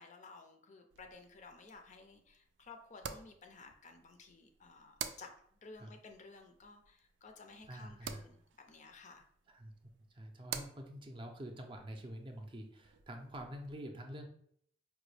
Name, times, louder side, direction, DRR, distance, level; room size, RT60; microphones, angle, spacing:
voice 1, 0.0-9.2, left 3 dB, 40° left, 5 dB, 0.5 m, -55 dB
sound 1, 0.9-13.7, right 8 dB, 85° right, 0.4 m, -51 dB
voice 2, 7.7-8.2 9.5-9.7 10.1-14.3, right 1 dB, 30° right, 3 dB, 0.5 m, -47 dB
4.8 x 2.2 x 3.2 m, 0.65 s
head